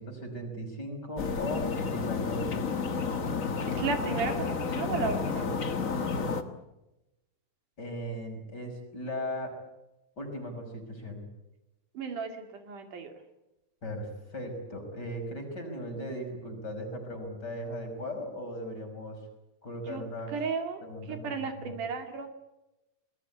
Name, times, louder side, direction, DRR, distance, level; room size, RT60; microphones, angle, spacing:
voice 1, 0.0-2.8 7.8-9.5 10.2-11.2 13.8-19.2 19.6-20.3 20.8-21.8, equal, 30° left, 4 dB, 6.1 m, -38 dB
sound 1, 1.2-6.4, left 5 dB, 50° left, 1.0 m, -31 dB
voice 2, 3.7-5.6 11.9-13.1 19.9-20.8 21.1-22.3, right 5 dB, 70° right, 6 dB, 3.9 m, -34 dB
26.5 x 21.0 x 8.4 m, 0.95 s
omnidirectional pair, 3.9 m